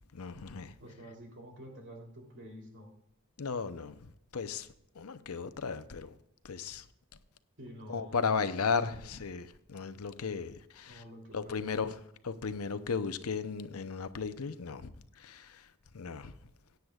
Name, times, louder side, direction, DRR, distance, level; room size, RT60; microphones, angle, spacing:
voice 1, 0.1-0.7 3.4-4.7 4.9-6.2 6.4-6.9 7.9-11.0 11.3-12.0 12.2-16.4, left 5 dB, 85° left, 0.7 m, -35 dB
voice 2, 0.8-2.9 7.6-9.1 10.9-11.9, equal, 60° right, 3.2 m, -49 dB
17.0 x 9.5 x 2.4 m
head